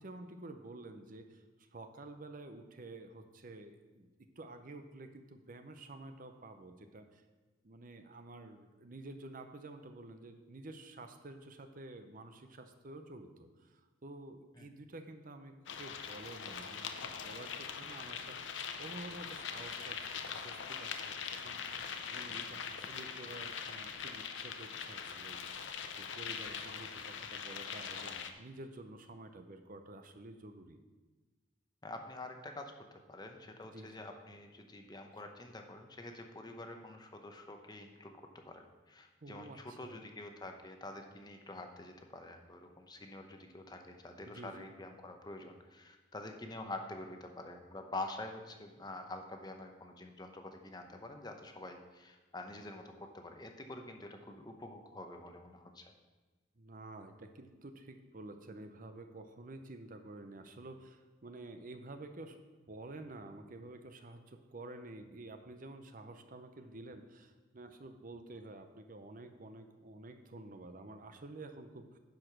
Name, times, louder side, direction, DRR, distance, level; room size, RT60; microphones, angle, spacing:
voice 1, 0.0-4.1 4.4-7.2 7.6-18.5 18.8-20.9 21.2-30.8 33.6-33.9 39.2-40.0 44.3-44.7 56.6-62.4 62.7-72.0, right 2 dB, 45° right, 7 dB, 0.7 m, -50 dB
sound 1, 15.7-28.3, left 6 dB, 75° left, 0.7 m, -42 dB
voice 2, 31.8-32.7 33.1-55.9, left 2 dB, 20° left, 4 dB, 0.8 m, -47 dB
10.5 x 5.1 x 5.9 m, 1.3 s
head